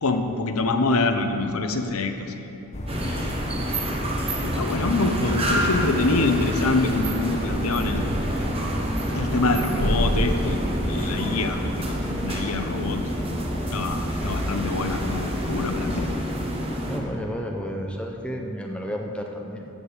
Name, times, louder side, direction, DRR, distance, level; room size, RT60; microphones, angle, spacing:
voice 1, 0.0-2.5 3.0-3.4 4.4-8.0 9.1-11.6 11.9-13.0 13.7-16.2, left 3 dB, 90° left, 6 dB, 0.9 m, -25 dB
sound 1, 2.7-16.2, equal, 35° left, 0.9 m, -31 dB
sound 2, 2.9-17.0, equal, 25° right, 1.3 m, -28 dB
voice 2, 16.9-19.7, equal, 5° left, 1 dB, 0.8 m, -32 dB
13.5 x 5.4 x 8.2 m, 3.0 s
head